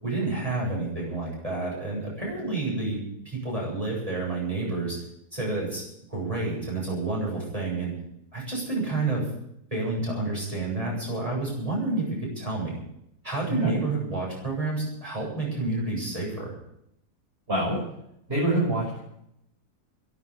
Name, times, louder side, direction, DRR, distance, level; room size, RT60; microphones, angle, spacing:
voice 1, 0.0-3.0 3.2-5.0 5.3-5.8 6.1-7.9 8.3-9.2 9.7-12.7 13.2-16.5, right 3 dB, 20° right, -4 dB, 8.2 m, -29 dB
voice 2, 17.5-17.8 18.3-19.0, right 1 dB, 35° right, -6 dB, 6.7 m, -25 dB
13.5 x 10.5 x 10.0 m, 0.76 s
omnidirectional pair, 1.7 m